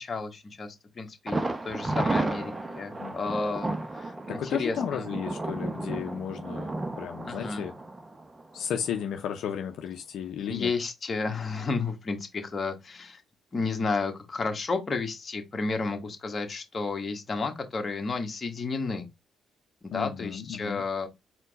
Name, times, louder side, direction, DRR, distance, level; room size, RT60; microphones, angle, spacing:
voice 1, 0.0-5.1 7.2-7.6 10.4-13.2 13.5-19.1 19.8-21.1, left 4 dB, 35° left, 1.3 m, -32 dB
Thunder, 1.3-9.0 9.3-9.4 9.8-9.9, right 2 dB, 20° right, 0.7 m, -33 dB
voice 2, 3.0-3.4 4.3-7.7 8.5-10.7 19.9-20.8, left 9 dB, 80° left, 0.6 m, -34 dB
4.4 x 2.2 x 4.0 m
cardioid pair, 90°, 0 cm